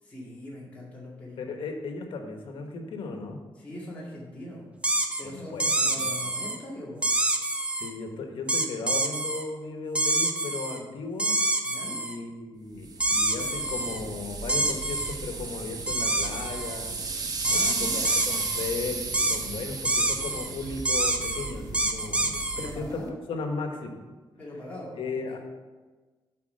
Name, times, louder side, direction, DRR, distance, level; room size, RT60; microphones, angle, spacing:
voice 1, 0.0-1.5 3.5-4.7 5.2-7.1 11.6-12.0 17.4-18.2 22.6-23.1 24.4-25.4, left 1 dB, 15° left, -7 dB, 2.1 m, -41 dB
voice 2, 1.4-3.4 5.2-6.2 7.8-11.4 11.8-16.9 17.5-24.0 25.0-25.4, left 3 dB, 85° left, 4 dB, 1.2 m, -36 dB
sound 1, 4.8-5.2 5.6-6.6 7.0-7.9 8.5-9.4 10.0-10.8 11.2-12.2 13.0-14.0 14.5-15.1 15.9-16.8 17.4-18.7 19.1-19.4 19.9-20.5 20.9-22.7, right 2 dB, 15° right, 0.7 m, -27 dB
sound 2, 12.8-23.1, right 4 dB, 45° right, 0.9 m, -35 dB
8.3 x 4.2 x 6.5 m, 1.3 s
wide cardioid pair, 150°, 9 cm